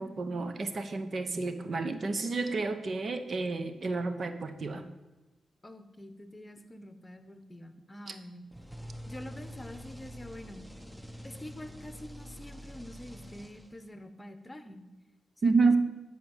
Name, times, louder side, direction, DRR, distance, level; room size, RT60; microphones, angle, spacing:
voice 1, 0.0-4.8 8.1-8.2 15.4-15.8, right 3 dB, 55° right, 9 dB, 0.9 m, -30 dB
voice 2, 5.6-8.5 9.0-10.7 11.2-14.9 15.4-15.7, left 1 dB, 20° left, 9 dB, 1.0 m, -46 dB
sound 1, 8.5-14.0, equal, 5° right, 0.8 m, -46 dB
10.5 x 4.6 x 7.2 m, 1.1 s
cardioid pair, 60°, 0 cm